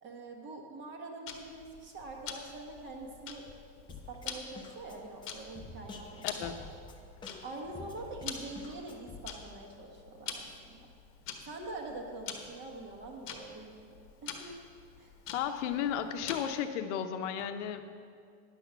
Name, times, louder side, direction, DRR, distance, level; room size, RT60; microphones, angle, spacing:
voice 1, 0.0-3.5 3.9-6.6 7.4-10.9 11.4-13.9 14.2-14.6 15.0-15.1 15.6-15.8, right 2 dB, 30° right, 2 dB, 1.4 m, -45 dB
Tick-tock, 1.3-16.7, left 7 dB, 35° left, 1.1 m, -46 dB
Drum kit, 3.9-9.2, left 3 dB, 15° left, 0.7 m, -49 dB
voice 2, 15.3-17.8, left 9 dB, 80° left, 7 dB, 0.9 m, -34 dB
10.5 x 6.0 x 7.0 m, 2.3 s
supercardioid pair, 155°, 35 cm